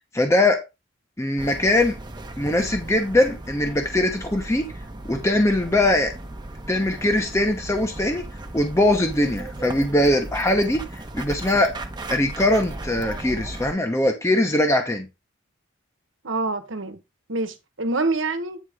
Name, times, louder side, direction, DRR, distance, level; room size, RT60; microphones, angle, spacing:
voice 1, 0.1-0.6 1.2-2.0 2.4-4.7 5.1-6.1 6.7-8.3 8.5-11.7 12.1-15.1, left 1 dB, 15° left, 0.9 m, -21 dB
sound 1, 1.4-13.7, right 2 dB, 25° right, 0.9 m, -36 dB
voice 2, 16.2-17.0 17.3-18.6, right 3 dB, 85° right, 1.3 m, -26 dB
9.3 x 3.6 x 5.0 m
head